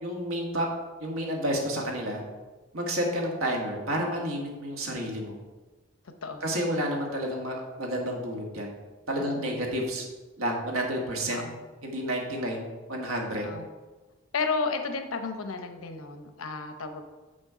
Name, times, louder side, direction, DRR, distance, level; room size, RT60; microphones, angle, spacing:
voice 1, 0.0-0.7 1.0-2.2 2.7-5.3 6.4-8.7 9.1-10.1 10.4-11.4 11.8-13.5, equal, 85° right, 0 dB, 1.7 m, -30 dB
voice 2, 9.2-9.6 11.3-11.6 13.4-13.7 14.3-17.1, left 4 dB, 85° left, 6 dB, 0.8 m, -33 dB
7.0 x 6.4 x 5.0 m, 1.3 s
head